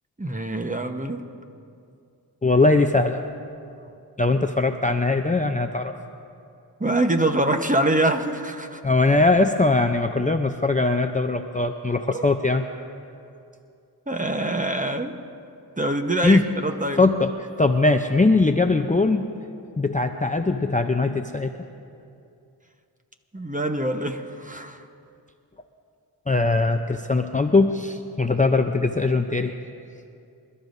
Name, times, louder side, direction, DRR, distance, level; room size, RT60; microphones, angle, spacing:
voice 1, 0.2-1.3 6.8-8.8 12.1-12.2 14.1-15.1 15.8-17.0 23.3-24.9, right 1 dB, 20° right, 5 dB, 1.1 m, -24 dB
voice 2, 2.4-3.2 4.2-5.9 8.8-12.6 16.2-16.4 17.0-19.3 19.8-21.5 26.3-29.6, left 3 dB, 20° left, 5 dB, 0.6 m, -21 dB
26.0 x 12.5 x 2.7 m, 2.5 s
cardioid pair, 45°, 42 cm